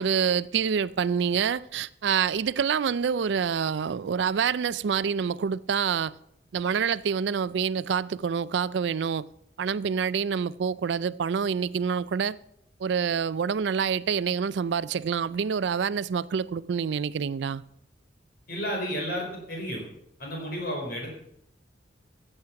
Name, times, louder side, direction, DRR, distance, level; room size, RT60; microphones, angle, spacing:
voice 1, 0.0-6.1 6.5-9.3 9.6-12.4 12.8-17.6, right 7 dB, 70° right, 0.4 m, -27 dB
voice 2, 18.5-19.8 20.2-21.1, equal, 50° left, 4.5 m, -32 dB
14.5 x 7.9 x 5.8 m
head